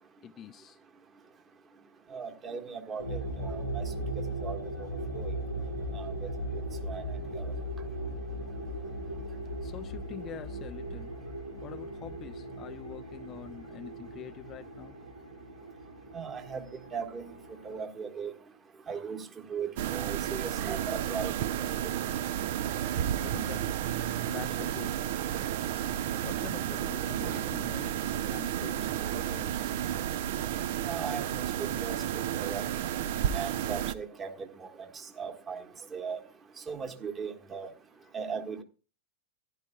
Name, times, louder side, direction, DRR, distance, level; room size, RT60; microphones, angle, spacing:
voice 1, 0.2-0.8 9.6-11.1 11.6-15.0 23.2-23.8 24.3-25.0 26.2-29.7 38.0-38.1, left 10 dB, 30° left, 0.4 m, -45 dB
voice 2, 2.1-3.8 4.4-4.9 5.1-5.3 5.9-6.1 6.8-7.0 7.3-7.4 16.1-16.7 16.9-17.2 17.6-18.3 18.9-21.7 30.8-32.6 33.3-34.3 34.6-34.9 35.2-35.6 35.9-36.2 36.7-37.7 38.1-38.6, right 6 dB, 25° right, 1.5 m, -38 dB
sound 1, 3.0-17.8, right 1 dB, 90° right, 2.4 m, -38 dB
sound 2, 19.8-33.9, right 11 dB, 50° right, 0.5 m, -32 dB
15.5 x 11.5 x 2.3 m
figure-of-eight pair, 90°, 0 cm